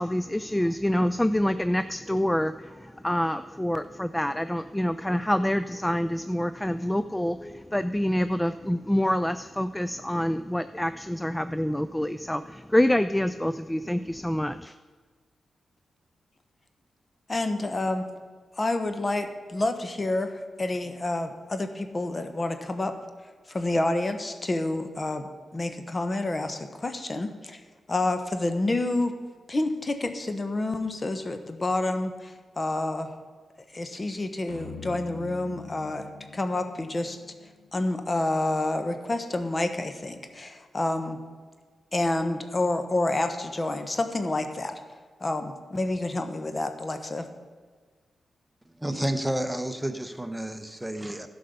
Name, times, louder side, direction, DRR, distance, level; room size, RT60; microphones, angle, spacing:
voice 1, 0.0-14.7, left 1 dB, 10° left, 12 dB, 0.4 m, -26 dB
voice 2, 17.3-18.1 18.6-22.9 23.5-27.6 27.9-29.1 29.5-33.2 33.7-36.0 36.3-37.2 37.7-41.2 41.9-44.7 45.2-47.3, left 2 dB, 35° left, 8 dB, 1.1 m, -28 dB
sound 1, 34.5-38.0, left 5 dB, 85° left, 1.8 m, -44 dB
voice 3, 48.8-51.3, right 1 dB, 10° right, 9 dB, 0.9 m, -30 dB
11.0 x 5.4 x 6.7 m, 1.5 s
supercardioid pair, 40°, 0 cm